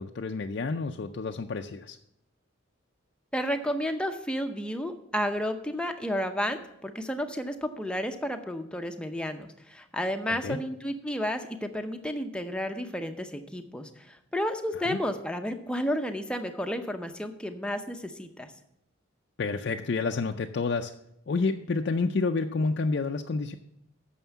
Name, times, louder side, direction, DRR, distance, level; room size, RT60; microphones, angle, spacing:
voice 1, 0.0-2.0 10.3-10.6 14.7-15.0 19.4-20.9 21.3-23.6, left 4 dB, 55° left, 4 dB, 0.4 m, -29 dB
voice 2, 3.3-18.5, equal, 5° left, 6 dB, 0.6 m, -32 dB
9.2 x 6.4 x 7.0 m, 0.80 s
head